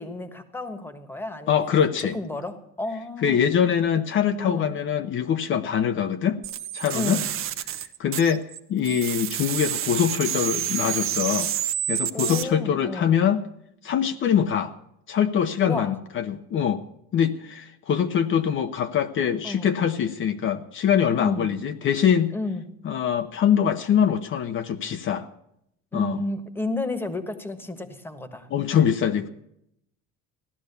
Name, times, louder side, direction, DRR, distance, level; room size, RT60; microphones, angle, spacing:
voice 1, 0.0-3.4 4.4-4.7 6.9-7.3 12.1-13.2 15.6-15.9 19.4-19.7 21.2-21.5 22.3-22.7 25.9-28.5, left 2 dB, 5° left, 9 dB, 1.4 m, -32 dB
voice 2, 1.5-2.1 3.2-6.4 6.7-7.2 8.0-8.4 8.7-11.5 11.9-13.4 13.8-14.7 15.1-16.8 17.1-22.3 22.8-25.3 25.9-26.2 28.5-29.3, left 8 dB, 40° left, 8 dB, 0.8 m, -23 dB
sound 1, 6.4-8.6 8.8-12.4, right 11 dB, 45° right, 1.0 m, -29 dB
16.0 x 12.0 x 6.9 m, 0.76 s
cardioid pair, 145°, 30 cm